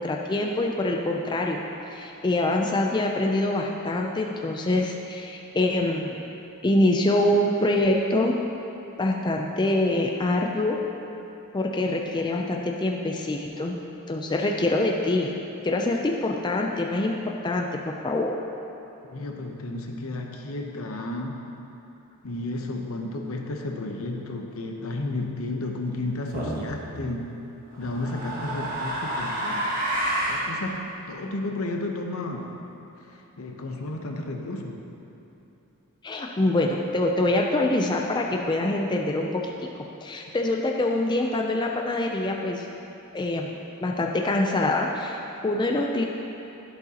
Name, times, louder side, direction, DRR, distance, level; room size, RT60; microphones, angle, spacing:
voice 1, 0.0-1.6 1.9-6.2 6.6-8.3 9.0-10.9 11.5-13.7 14.1-15.3 15.6-17.1 17.4-18.3 36.0-39.3 40.0-42.7 43.1-43.5 43.8-46.0, left 1 dB, 20° left, 1 dB, 0.4 m, -25 dB
voice 2, 19.0-21.4 22.2-27.3 27.8-29.7 30.3-32.5 33.0-34.8, left 2 dB, 70° left, 2 dB, 0.8 m, -32 dB
sound 1, 26.3-26.7 27.7-30.5, right 1 dB, 40° right, 1.3 m, -29 dB
11.0 x 7.7 x 2.8 m, 2.9 s
head